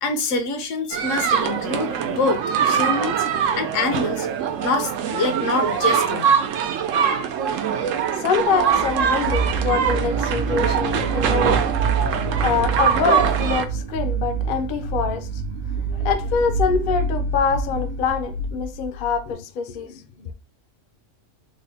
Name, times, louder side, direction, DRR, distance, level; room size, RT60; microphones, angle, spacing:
voice 1, 0.0-3.3 3.6-4.3 4.6-6.3, left 3 dB, 80° left, 1.1 m, -25 dB
sound 1, 0.9-13.7, right 7 dB, 85° right, 0.9 m, -23 dB
voice 2, 8.1-11.7 12.4-15.4 15.7-20.3, left 5 dB, 60° left, 0.6 m, -25 dB
sound 2, 8.6-19.2, right 4 dB, 55° right, 0.6 m, -26 dB
3.2 x 2.1 x 3.9 m
omnidirectional pair, 1.3 m